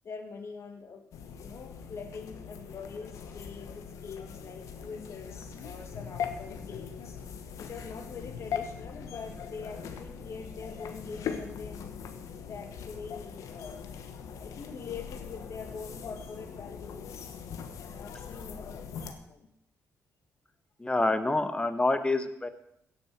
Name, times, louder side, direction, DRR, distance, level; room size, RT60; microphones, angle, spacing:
voice 1, 0.0-1.1 1.4-11.9 12.4-13.8 14.2-17.3 17.9-19.5, left 5 dB, 60° left, 5 dB, 2.2 m, -44 dB
sound 1, 1.1-19.1, left 7 dB, 80° left, 1.3 m, -41 dB
voice 2, 20.8-22.5, left 2 dB, 20° left, 9 dB, 1.3 m, -27 dB
16.5 x 6.5 x 6.1 m, 0.78 s
cardioid pair, 75°, 5 cm